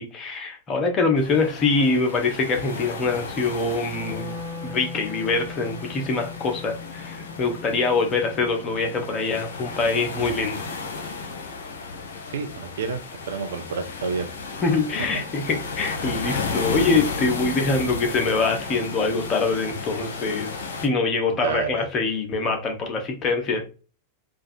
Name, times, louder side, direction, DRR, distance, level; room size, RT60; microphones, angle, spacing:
voice 1, 0.0-10.6 14.6-20.5 20.8-23.7, left 3 dB, 30° left, 0.9 m, -24 dB
sound 1, 1.2-20.9, left 4 dB, 65° left, 0.7 m, -34 dB
Wind instrument woodwind instrument, 3.8-10.0, left 5 dB, 25° right, 0.8 m, -40 dB
voice 2, 12.3-13.0 13.3-14.3 15.0-15.1 21.4-21.8, right 5 dB, 60° right, 0.6 m, -29 dB
4.5 x 2.4 x 2.6 m
figure-of-eight pair, 90°, 0 cm